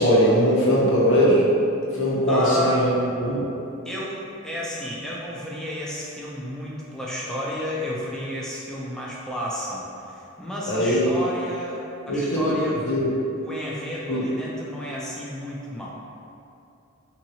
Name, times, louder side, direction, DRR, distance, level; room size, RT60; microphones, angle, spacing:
voice 1, 0.0-1.5 1.9-2.9 3.2-3.4 10.7-11.1 12.1-12.5 12.8-13.1 14.1-14.2, equal, 65° left, -5 dB, 0.7 m, -20 dB
voice 2, 2.3-2.9 3.8-12.8 13.4-15.9, left 1 dB, 5° left, -6 dB, 0.3 m, -31 dB
2.7 x 2.7 x 2.8 m, 2.6 s
head